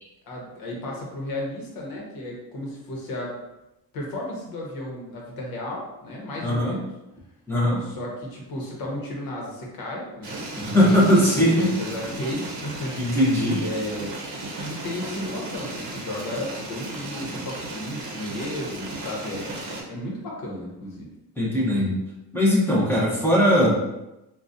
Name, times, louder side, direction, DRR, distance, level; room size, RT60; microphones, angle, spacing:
voice 1, 0.2-3.4 3.9-6.9 7.8-11.0 11.3-13.2 13.6-14.2 14.6-21.1, left 1 dB, 70° left, -2 dB, 1.1 m, -34 dB
voice 2, 6.4-6.8 7.5-7.8 10.6-11.7 13.0-13.6 21.4-22.0 22.3-23.8, equal, 5° left, -6 dB, 0.8 m, -20 dB
sound 1, 10.2-19.8, right 2 dB, 50° right, 0.7 m, -35 dB
3.9 x 2.3 x 2.6 m, 0.94 s
cardioid pair, 155°, 36 cm